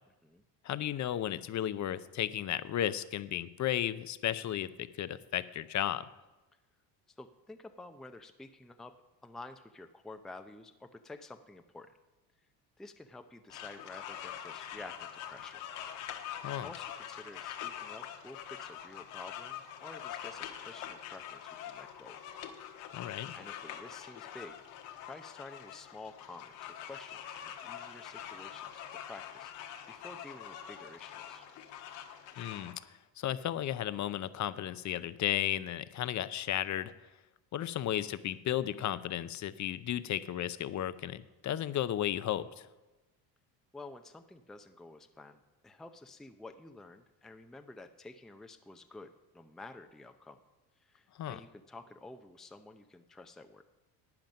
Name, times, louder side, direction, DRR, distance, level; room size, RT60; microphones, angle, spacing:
voice 1, 0.6-6.0 16.4-16.7 22.9-23.4 32.4-32.7 33.2-36.9 37.5-42.7 51.2-51.4, left 11 dB, 40° left, 14 dB, 0.6 m, -34 dB
voice 2, 7.2-8.9 9.2-11.9 12.8-15.7 16.2-22.2 22.9-24.5 25.0-31.5 43.7-50.4 50.8-53.6, left 2 dB, ahead, 7 dB, 0.5 m, -50 dB
sound 1, 13.5-32.7, left 10 dB, 80° left, 1.4 m, -44 dB
12.0 x 9.0 x 5.3 m, 1.1 s
supercardioid pair, 95°, 46 cm